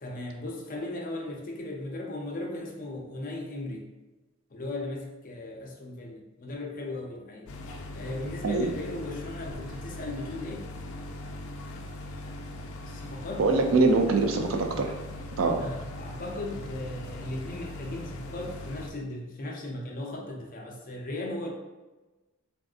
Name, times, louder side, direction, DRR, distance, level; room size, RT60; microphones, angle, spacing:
voice 1, 0.0-3.9 4.5-7.5 7.9-10.7 12.8-13.5 15.6-21.5, left 2 dB, 45° left, -1 dB, 0.6 m, -37 dB
sound 1, 7.5-18.9, left 1 dB, 85° left, 0.4 m, -40 dB
voice 2, 13.4-14.9 15.4-15.6, right 3 dB, 75° right, 4 dB, 0.4 m, -23 dB
3.4 x 2.6 x 2.4 m, 1.1 s
head